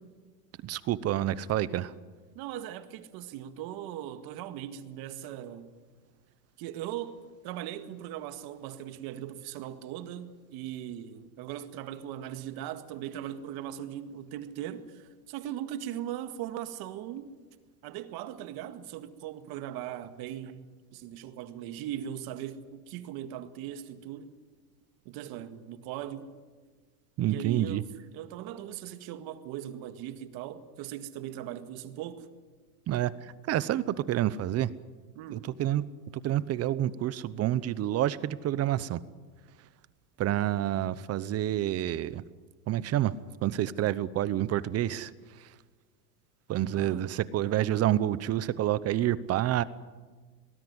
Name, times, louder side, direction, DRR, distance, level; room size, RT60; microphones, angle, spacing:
voice 1, 0.6-1.9 27.2-27.8 32.9-33.1 33.5-34.7 35.3-35.8 36.1-39.0 40.2-42.2 42.7-43.1 43.4-45.1 45.4-45.5 46.5-49.6, right 13 dB, 30° right, 0.9 m, -28 dB
voice 2, 2.4-5.7 6.6-7.2 7.4-17.4 17.8-24.3 25.1-26.3 27.3-27.8 28.1-32.3 35.1-35.5 46.7-47.1, right 11 dB, 50° right, 2.0 m, -39 dB
23.0 x 20.0 x 9.7 m
supercardioid pair, 135°, 46 cm